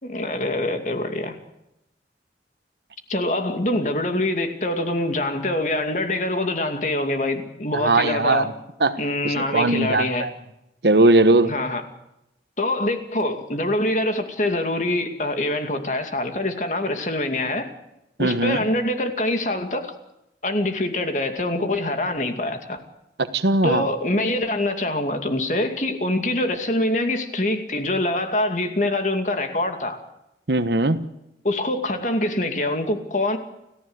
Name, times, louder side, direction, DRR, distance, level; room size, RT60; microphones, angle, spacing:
voice 1, 0.0-1.4 3.1-8.5 9.0-10.3 11.4-11.8 12.6-17.7 18.2-19.9 20.4-22.8 23.6-30.0 31.4-33.4, left 1 dB, 45° left, 2.5 m, -24 dB
voice 2, 7.7-8.5 8.8-9.0 9.2-10.3 10.8-11.5 18.2-18.6 23.2-23.9 30.5-31.1, right 2 dB, 75° right, 1.2 m, -19 dB
30.0 x 15.0 x 8.1 m
head